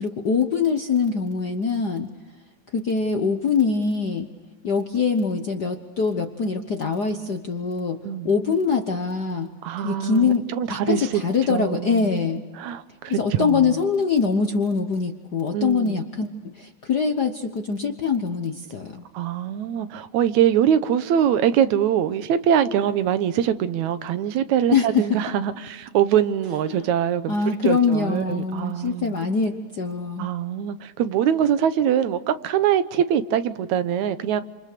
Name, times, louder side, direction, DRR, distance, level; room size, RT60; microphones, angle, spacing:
voice 1, 0.0-2.1 2.7-4.3 4.6-9.5 9.8-10.4 10.7-12.4 13.1-19.0 24.7-25.2 26.6-26.8 27.3-30.3, left 5 dB, 60° left, 1.1 m, -23 dB
voice 2, 9.6-11.2 11.5-12.2 12.6-13.7 15.5-16.0 19.1-27.4 27.6-29.2 30.2-34.4, right 9 dB, 80° right, 2.3 m, -23 dB
28.5 x 27.5 x 6.8 m
omnidirectional pair, 3.3 m